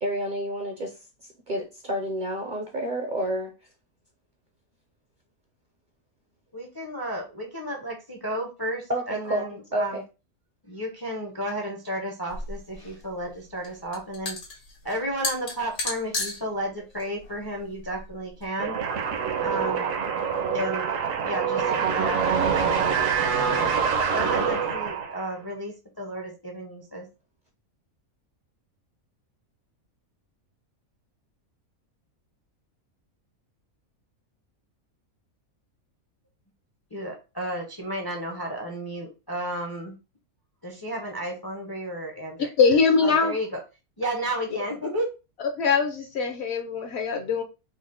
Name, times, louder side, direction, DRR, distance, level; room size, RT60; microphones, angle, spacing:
voice 1, 0.0-3.5 8.9-10.0, right 1 dB, 50° right, 2 dB, 0.6 m, -30 dB
voice 2, 6.5-10.0 10.7-14.4 14.8-18.7 19.4-19.9 20.5-20.9 21.2-22.8 23.2-23.7 24.1-27.1 36.9-39.9 40.6-42.5 43.0-43.6 44.0-45.1, right 1 dB, 30° left, 1 dB, 0.4 m, -32 dB
sound 1, 12.3-18.5, left 3 dB, 90° left, 1.6 m, -35 dB
sound 2, 18.6-25.3, right 6 dB, 70° right, 1.0 m, -25 dB
voice 3, 42.6-43.3 45.6-47.4, left 5 dB, 60° left, 4 dB, 0.8 m, -22 dB
4.1 x 2.0 x 3.7 m, 0.29 s
omnidirectional pair, 1.5 m